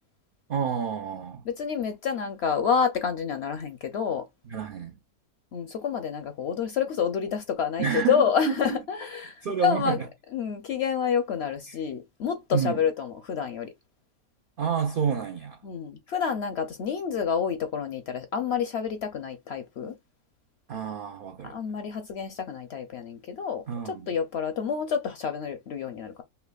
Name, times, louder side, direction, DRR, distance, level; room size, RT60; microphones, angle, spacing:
voice 1, 0.5-1.4 4.5-5.0 7.8-8.8 9.4-10.0 12.5-12.8 14.6-15.6 20.7-21.6 23.7-24.1, right 7 dB, 90° right, 0.4 m, -29 dB
voice 2, 1.5-4.3 5.5-10.0 10.3-13.7 15.6-20.0 21.4-26.2, left 7 dB, 65° left, 0.6 m, -28 dB
5.6 x 2.1 x 2.3 m
omnidirectional pair, 1.6 m